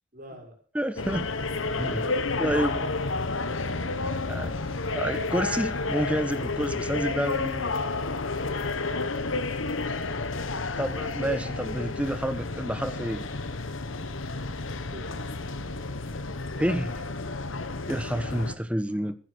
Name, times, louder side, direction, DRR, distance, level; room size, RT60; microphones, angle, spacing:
voice 1, 0.1-0.6 14.9-15.2 18.2-18.5, equal, 40° right, 0 dB, 6.0 m, -47 dB
voice 2, 0.7-1.3 1.8-2.1 2.4-2.8 4.0-4.6 4.9-7.7 10.8-13.2 16.6-17.0 17.9-19.1, equal, 5° right, 11 dB, 1.2 m, -29 dB
sound 1, 1.0-18.5, left 3 dB, 75° left, 1.3 m, -31 dB
16.5 x 10.0 x 6.2 m, 0.40 s
head